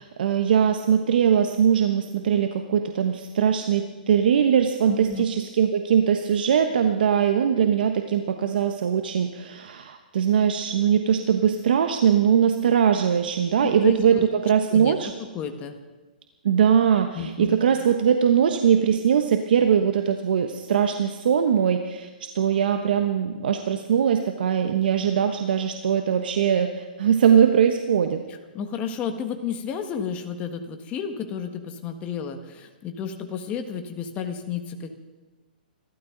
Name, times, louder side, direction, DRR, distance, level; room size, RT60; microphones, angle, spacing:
voice 1, 0.0-14.2 14.4-15.1 16.4-28.2, right 8 dB, 70° right, 6 dB, 1.2 m, -21 dB
voice 2, 4.9-5.3 13.6-14.3 14.7-15.8 17.1-17.6 28.5-34.9, left 7 dB, 25° left, 6 dB, 1.7 m, -32 dB
26.5 x 13.0 x 4.0 m, 1.2 s
hypercardioid pair, 135°, 5 cm